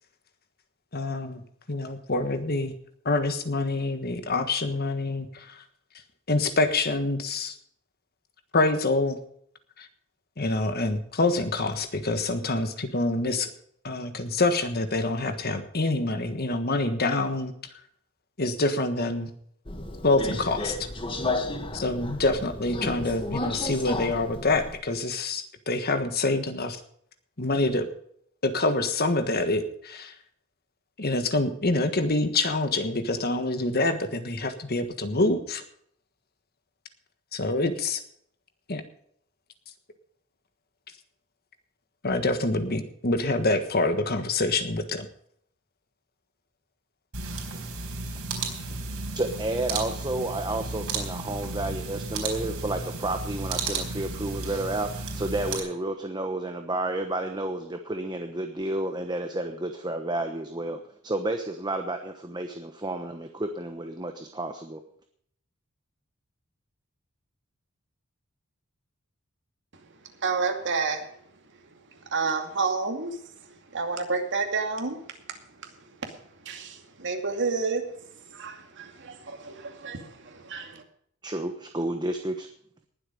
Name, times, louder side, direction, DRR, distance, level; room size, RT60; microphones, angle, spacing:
voice 1, 0.9-1.4 1.7-2.7 3.0-5.6 6.3-7.6 8.5-9.2 9.8-9.9 10.4-13.5 13.8-17.5 18.4-19.3 20.0-20.9 21.7-26.8 27.4-27.9 28.4-30.1 31.0-35.6 37.3-38.0 38.7-38.8 42.0-45.1, left 2 dB, 45° left, 1.5 m, -26 dB
Subway metro underground, 19.7-24.8, left 2 dB, 25° left, 1.6 m, -33 dB
sound 1, 47.1-55.6, right 3 dB, 80° right, 4.2 m, -33 dB
voice 2, 49.1-64.8 81.2-82.5, right 2 dB, 20° right, 1.1 m, -31 dB
voice 3, 70.2-71.1 71.9-80.8, right 4 dB, 55° right, 2.4 m, -31 dB
20.0 x 7.9 x 5.2 m
head